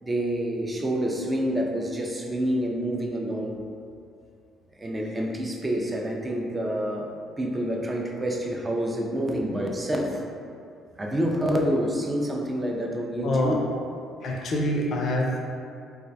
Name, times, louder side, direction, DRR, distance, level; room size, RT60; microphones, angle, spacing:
voice 1, 0.0-3.6 4.8-7.1 7.4-10.2 11.0-13.7, equal, 25° right, 0 dB, 0.3 m, -27 dB
voice 2, 13.2-13.6 14.2-15.4, left 1 dB, 60° left, -1 dB, 0.4 m, -25 dB
2.3 x 2.0 x 2.6 m, 2.4 s
supercardioid pair, 75°, 0 cm